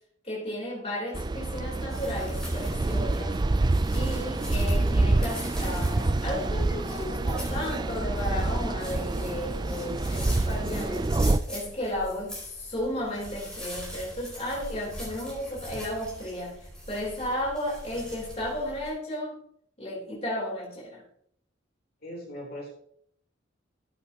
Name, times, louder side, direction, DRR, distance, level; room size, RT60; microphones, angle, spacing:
voice 1, 0.2-3.4 3.9-11.1 11.5-16.6 16.9-19.4 19.8-21.0, left 1 dB, 35° left, -4 dB, 3.6 m, -34 dB
sound 1, 1.1-11.4, right 2 dB, 20° right, 0.4 m, -27 dB
sound 2, 1.9-18.9, equal, 5° left, 4.6 m, -40 dB
voice 2, 22.0-22.7, equal, 50° left, -3 dB, 3.6 m, -39 dB
14.0 x 8.7 x 2.9 m, 0.66 s
head